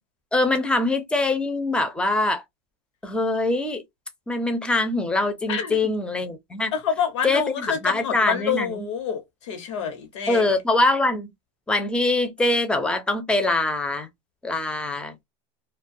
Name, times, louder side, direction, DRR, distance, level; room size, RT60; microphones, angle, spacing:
voice 1, 0.3-2.4 3.0-3.8 4.3-6.7 7.2-8.9 10.3-11.3 11.7-14.1 14.4-15.1, left 2 dB, 5° left, 0.5 m, -23 dB
voice 2, 5.5-5.9 6.7-10.5, left 7 dB, 85° left, 0.9 m, -27 dB
2.3 x 2.2 x 2.5 m
supercardioid pair, 135°, 15 cm